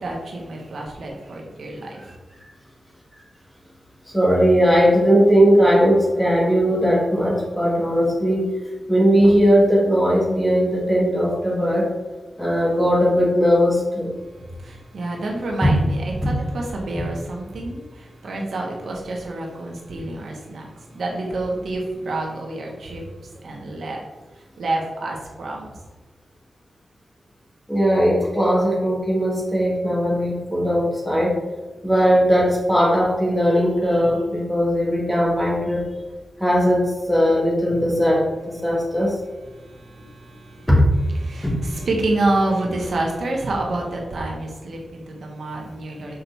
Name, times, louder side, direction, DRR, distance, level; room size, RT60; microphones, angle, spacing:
voice 1, 0.0-2.1 14.2-23.0 23.4-24.0 24.3-25.7 39.5-40.7 41.1-46.2, right 2 dB, 75° right, -1 dB, 1.3 m, -28 dB
voice 2, 4.1-8.5 8.9-11.9 12.4-14.1 16.2-16.3 27.7-31.4 31.8-35.8 36.4-39.2 40.7-40.8 41.4-41.5, equal, 5° left, -5 dB, 2.1 m, -18 dB
6.5 x 4.6 x 4.1 m, 1.2 s
wide cardioid pair, 135°, 0 cm